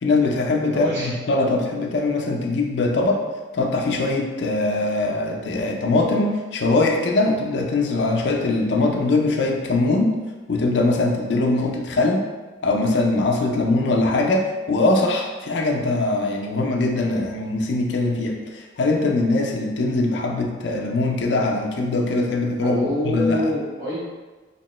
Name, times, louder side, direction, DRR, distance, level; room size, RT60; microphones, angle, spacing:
voice 1, 0.0-3.2 3.5-10.1 10.5-12.3 12.6-22.8 23.0-23.4, left 2 dB, 65° left, 1 dB, 0.5 m, -21 dB
voice 2, 0.7-1.1 22.6-24.0, left 1 dB, 65° right, -7 dB, 1.2 m, -25 dB
2.9 x 2.9 x 3.0 m, 1.3 s
head